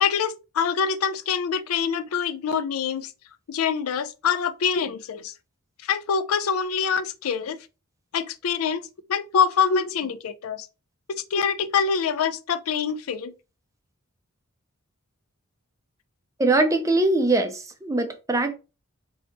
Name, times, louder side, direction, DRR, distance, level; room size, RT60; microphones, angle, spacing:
voice 1, 0.0-3.1 3.5-5.3 5.8-7.6 8.1-8.8 9.1-10.7 11.1-13.3, left 6 dB, 80° left, 0.4 m, -25 dB
voice 2, 16.4-18.5, right 2 dB, 15° right, 0.4 m, -22 dB
4.1 x 2.8 x 3.4 m
head